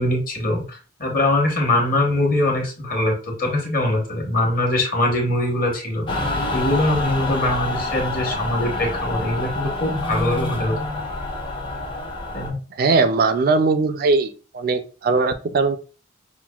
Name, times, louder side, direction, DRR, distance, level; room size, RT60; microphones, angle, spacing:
voice 1, 0.0-10.8 12.3-12.6, left 1 dB, 45° left, 0 dB, 1.2 m, -22 dB
Mechanical fan, 6.1-12.5, left 2 dB, 25° left, 0.6 m, -27 dB
voice 2, 12.8-15.8, right 3 dB, 50° right, 10 dB, 0.3 m, -20 dB
5.8 x 2.1 x 2.3 m, 0.36 s
head